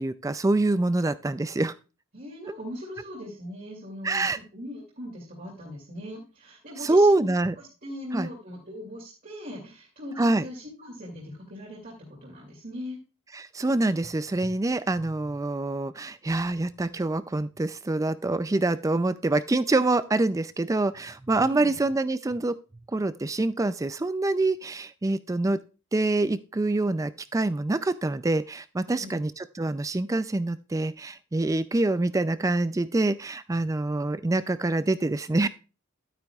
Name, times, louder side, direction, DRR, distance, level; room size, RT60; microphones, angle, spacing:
voice 1, 0.0-1.7 4.0-4.4 6.8-7.6 8.1-8.3 10.2-10.5 13.3-22.6 22.9-25.6 25.9-35.5, right 2 dB, 15° right, 14 dB, 0.3 m, -25 dB
voice 2, 2.1-7.3 7.6-11.9 12.2-13.0 21.4-21.7 28.9-29.2, left 1 dB, 45° right, -4 dB, 2.6 m, -40 dB
11.5 x 9.3 x 2.3 m, 0.32 s
head